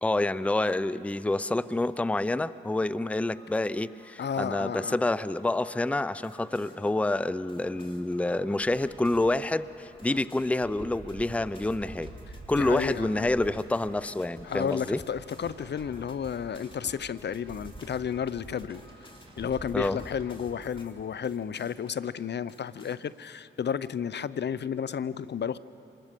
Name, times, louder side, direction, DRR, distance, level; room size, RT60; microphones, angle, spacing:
voice 1, 0.0-12.1 12.5-15.0 19.7-20.0, left 2 dB, 5° left, 16 dB, 0.5 m, -28 dB
sound 1, 3.2-20.9 21.2-22.1 22.5-23.0, left 1 dB, 25° left, 3.3 m, -53 dB
voice 2, 4.2-5.0 12.5-13.3 14.4-19.1 19.4-25.6, left 7 dB, 55° left, 17 dB, 0.6 m, -32 dB
sound 2, 8.6-20.9, right 2 dB, 25° right, 3.5 m, -48 dB
26.5 x 21.0 x 6.7 m, 2.9 s
supercardioid pair, 50°, 21 cm